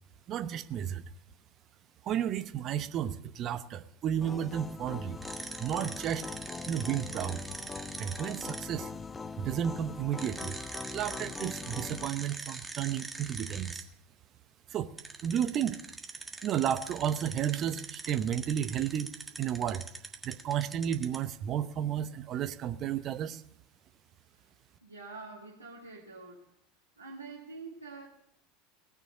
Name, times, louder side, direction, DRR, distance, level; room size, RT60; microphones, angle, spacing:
voice 1, 0.3-1.0 2.0-5.2 5.6-6.2 6.7-7.5 8.0-8.9 9.4-10.6 10.9-13.8 14.7-14.9 15.2-15.8 16.4-19.9 20.2-23.4, right 10 dB, 40° right, 0.9 m, -32 dB
sound 1, 4.2-12.1, left 4 dB, 20° left, 0.5 m, -42 dB
sound 2, 5.2-8.7 10.2-13.8 15.0-21.2, right 3 dB, 10° right, 1.6 m, -42 dB
voice 2, 24.8-26.5 27.0-28.1, right 3 dB, 85° right, 2.1 m, -46 dB
18.5 x 6.7 x 7.4 m
figure-of-eight pair, 75°, 0 cm